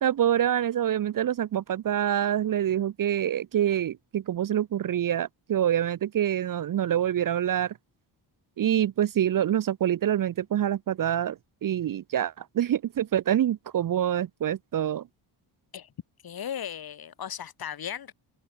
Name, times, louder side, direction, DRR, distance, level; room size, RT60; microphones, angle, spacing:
voice 1, 0.0-7.7 8.6-15.0, right 10 dB, 45° right, 0.7 m, -26 dB
voice 2, 16.2-18.1, left 9 dB, 50° left, 4.0 m, -36 dB
open air
cardioid pair, 150°, 46 cm